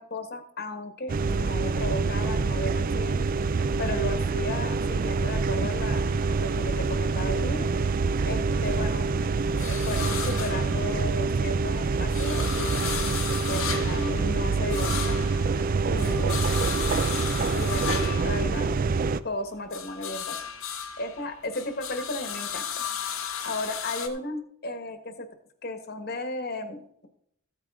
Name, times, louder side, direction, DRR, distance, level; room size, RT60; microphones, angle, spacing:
voice 1, 0.0-3.2 3.8-7.7 8.2-9.1 9.5-13.1 13.4-15.3 15.8-16.7 17.5-18.8 19.2-20.5 21.0-22.8 23.4-25.3 25.6-27.1, left 2 dB, 50° left, 8 dB, 1.3 m, -35 dB
sound 1, 1.1-19.2, right 4 dB, 45° right, 0.4 m, -26 dB
sound 2, 5.0-7.4 7.7-11.4 11.8-19.2 19.5-24.1, left 8 dB, 80° left, 1.4 m, -36 dB
14.5 x 8.7 x 3.6 m, 0.73 s
head